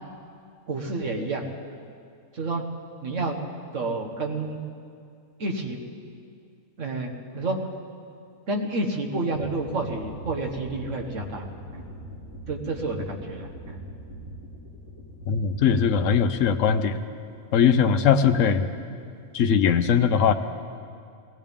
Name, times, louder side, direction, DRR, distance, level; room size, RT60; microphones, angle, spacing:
voice 1, 0.7-1.4 2.3-2.6 3.0-3.4 3.7-4.6 5.4-5.8 6.8-7.6 8.5-11.4 11.7-11.8 12.5-13.8 17.8-17.9, right 2 dB, 60° right, 2 dB, 1.6 m, -29 dB
sound 1, 9.3-16.4, right 1 dB, 75° right, 2.9 m, -42 dB
voice 2, 15.3-17.0 17.5-18.7 19.3-20.3, left 7 dB, 70° left, 9 dB, 1.0 m, -20 dB
20.0 x 16.5 x 3.6 m, 2.4 s
omnidirectional pair, 1.5 m